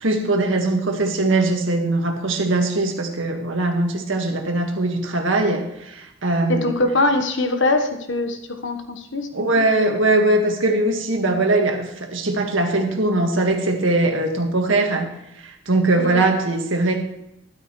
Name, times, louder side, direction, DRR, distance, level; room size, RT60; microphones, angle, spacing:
voice 1, 0.0-6.7 9.3-15.1 15.4-17.0, right 2 dB, 85° right, 3 dB, 1.8 m, -21 dB
voice 2, 6.5-9.3 9.6-9.7 16.0-16.2, left 2 dB, 70° left, 5 dB, 1.3 m, -22 dB
13.0 x 12.0 x 3.2 m, 0.83 s
head